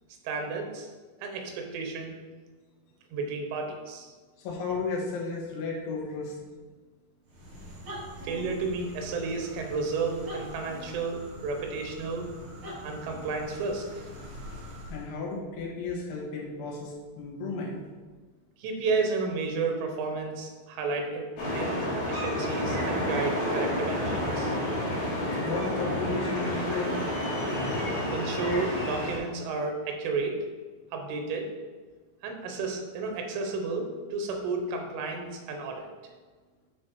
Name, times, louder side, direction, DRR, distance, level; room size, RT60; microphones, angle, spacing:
voice 1, 0.3-0.9 1.2-2.2 3.1-4.1 8.2-12.3 12.8-14.1 18.6-24.6 28.1-30.4 30.9-31.5 32.2-35.9, right 4 dB, 90° right, 3 dB, 3.5 m, -32 dB
voice 2, 4.4-6.4 14.9-17.8 25.3-27.0, left 4 dB, 75° left, -2 dB, 3.7 m, -34 dB
sound 1, 7.2-15.1, equal, 60° right, 1.3 m, -43 dB
sound 2, 21.4-29.2, left 1 dB, 50° left, 2.5 m, -30 dB
9.3 x 4.3 x 4.6 m, 1.4 s
omnidirectional pair, 5.5 m